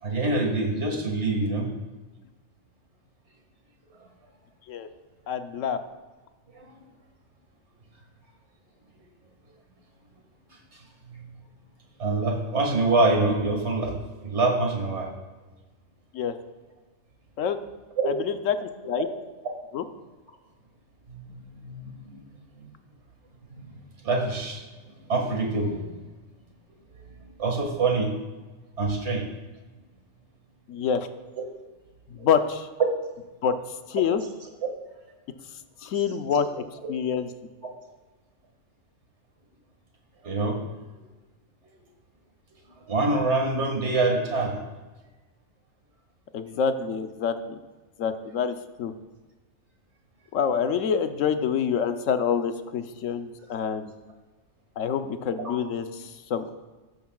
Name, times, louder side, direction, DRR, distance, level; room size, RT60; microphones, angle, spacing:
voice 1, 0.0-1.7 6.5-6.8 12.0-15.1 18.0-18.1 21.1-21.2 21.6-22.2 22.6-22.7 23.5-23.8 24.0-24.6 25.1-26.0 27.4-28.1 28.8-29.2 32.2-32.3 34.6-34.7 40.2-40.6 42.9-44.6 55.4-55.5, right 3 dB, 60° right, 1 dB, 2.2 m, -25 dB
voice 2, 5.3-5.8 16.1-16.3 17.4-17.6 18.1-19.1 19.7-19.8 30.7-31.1 32.1-32.7 33.4-33.5 33.9-34.2 35.8-36.6 36.9-37.3 46.3-47.6 48.0-48.9 50.3-53.9 54.8-56.5, left 7 dB, 80° left, 8 dB, 1.1 m, -27 dB
15.5 x 13.0 x 2.4 m, 1.2 s
omnidirectional pair, 1.3 m